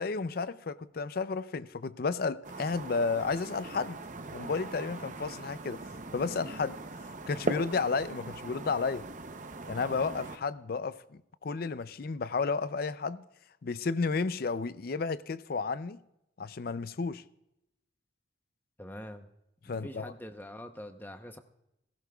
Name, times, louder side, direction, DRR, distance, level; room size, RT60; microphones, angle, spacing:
voice 1, 0.0-4.0 4.3-5.8 6.1-6.8 7.3-9.0 9.7-13.2 13.6-16.0 16.4-17.2 19.7-20.1, left 4 dB, 50° left, 0.4 m, -32 dB
sound 1, 2.4-10.4, right 2 dB, 40° right, 0.7 m, -40 dB
voice 2, 18.8-19.3 19.6-21.4, left 1 dB, 10° left, 0.8 m, -44 dB
17.5 x 15.5 x 2.3 m
head